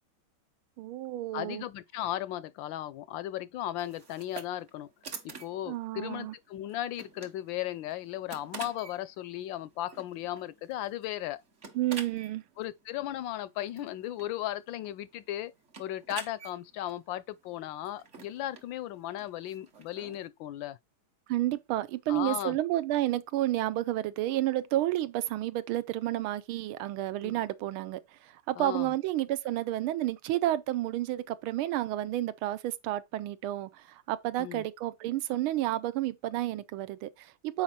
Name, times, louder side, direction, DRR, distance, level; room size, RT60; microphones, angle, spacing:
voice 1, 0.8-1.6 5.7-6.3 11.7-12.4 21.3-37.6, right 14 dB, 85° right, 1.5 m, -31 dB
voice 2, 1.3-4.9 5.2-11.4 12.6-15.5 15.8-20.8 22.1-22.6 27.2-27.4 28.6-28.9 34.4-34.6, left 13 dB, 75° left, 1.2 m, -36 dB
sound 1, 3.8-20.3, right 5 dB, 40° right, 1.2 m, -49 dB
7.3 x 4.7 x 4.2 m
omnidirectional pair, 2.3 m